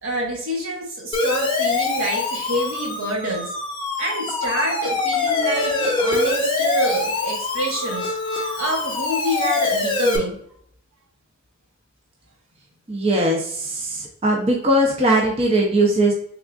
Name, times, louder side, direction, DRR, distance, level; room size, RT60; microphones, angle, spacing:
voice 1, 0.0-3.5 4.0-10.4, right 1 dB, 80° right, -1 dB, 1.1 m, -27 dB
Siren, 1.1-10.2, left 3 dB, 25° left, 0.6 m, -24 dB
voice 2, 12.9-16.1, right 1 dB, 30° right, -1 dB, 0.5 m, -20 dB
3.6 x 3.5 x 2.4 m, 0.66 s
head